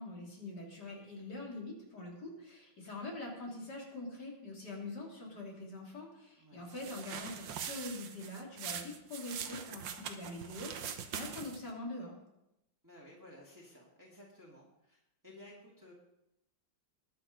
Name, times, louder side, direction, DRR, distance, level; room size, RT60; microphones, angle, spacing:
voice 1, 0.0-12.2, left 2 dB, 60° left, -2 dB, 3.7 m, -44 dB
sound 1, 6.7-11.7, right 8 dB, 75° right, 1.7 m, -43 dB
voice 2, 12.8-15.9, left 1 dB, 10° right, -5 dB, 2.0 m, -56 dB
20.0 x 6.8 x 5.2 m, 0.87 s
omnidirectional pair, 2.0 m